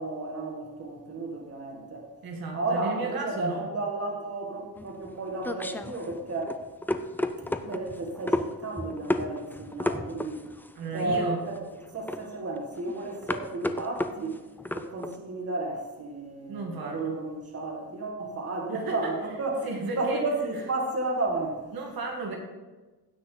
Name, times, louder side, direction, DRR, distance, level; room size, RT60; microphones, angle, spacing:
voice 1, 0.0-2.1 2.5-6.6 7.4-10.4 10.9-11.6 11.9-14.4 14.7-21.7, right 2 dB, 40° right, 1 dB, 1.9 m, -32 dB
voice 2, 2.2-3.6 10.7-11.4 16.5-17.2 18.7-19.1 19.6-20.2 21.7-22.4, right 3 dB, 65° right, 1 dB, 1.7 m, -34 dB
sound 1, 4.8-15.2, left 1 dB, 5° left, 0.4 m, -33 dB
16.0 x 6.1 x 3.9 m, 1.2 s
wide cardioid pair, 135°, 38 cm